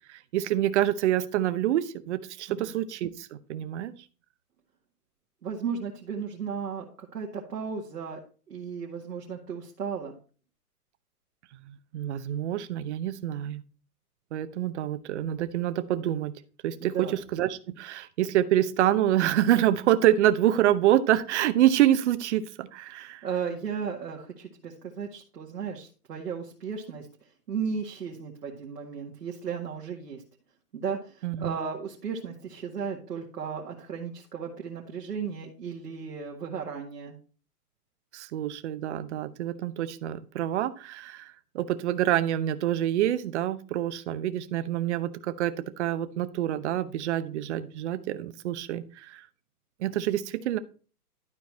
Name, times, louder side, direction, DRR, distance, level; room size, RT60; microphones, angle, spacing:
voice 1, 0.1-3.9 11.7-13.6 14.3-16.4 16.6-23.2 31.2-31.6 38.1-49.2 49.8-50.6, right 12 dB, 45° right, 13 dB, 0.9 m, -26 dB
voice 2, 5.4-8.2 8.5-10.1 16.8-17.1 23.0-27.1 27.5-30.2 30.7-37.2, right 6 dB, 80° right, -1 dB, 2.0 m, -35 dB
12.0 x 4.6 x 4.2 m, 0.38 s
hypercardioid pair, 130°, 47 cm